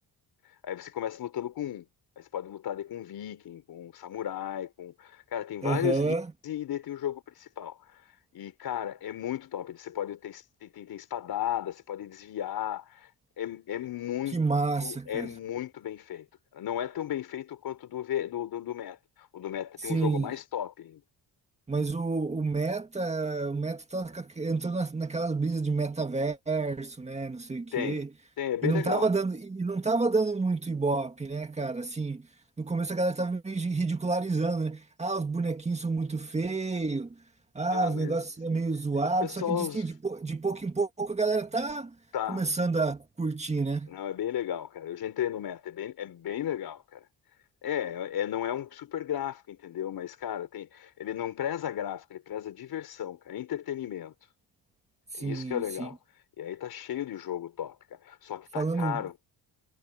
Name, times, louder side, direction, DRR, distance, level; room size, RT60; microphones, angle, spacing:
voice 1, 0.6-1.9 2.2-6.1 6.4-8.0 8.3-13.1 13.4-14.4 14.8-16.3 16.5-21.0 27.7-28.0 28.4-29.1 37.7-38.2 39.0-39.8 42.1-42.4 43.9-47.1 47.6-54.1 55.2-56.0 56.4-59.1, left 10 dB, 65° left, 4.3 m, -34 dB
voice 2, 5.6-6.3 14.3-15.3 19.9-20.3 21.7-28.1 28.6-32.3 32.6-37.1 37.6-41.9 42.3-43.9 55.1-55.9 58.6-59.0, right 3 dB, 15° right, 1.9 m, -29 dB
cardioid pair, 160°, 39 cm